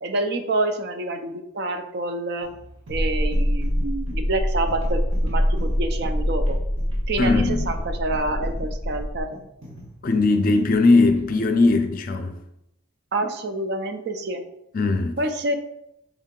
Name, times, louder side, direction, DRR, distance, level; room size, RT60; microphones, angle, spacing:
voice 1, 0.0-2.5 2.9-6.6 7.1-9.4 13.1-14.4 15.2-15.6, right 2 dB, 55° right, 0.5 m, -27 dB
sound 1, 2.4-12.0, equal, 90° right, 1.2 m, -43 dB
sound 2, 2.9-9.2, equal, 10° right, 0.5 m, -24 dB
voice 2, 7.2-7.7 10.0-12.4 14.7-15.1, left 3 dB, 45° left, 0.4 m, -19 dB
4.9 x 2.7 x 3.7 m
head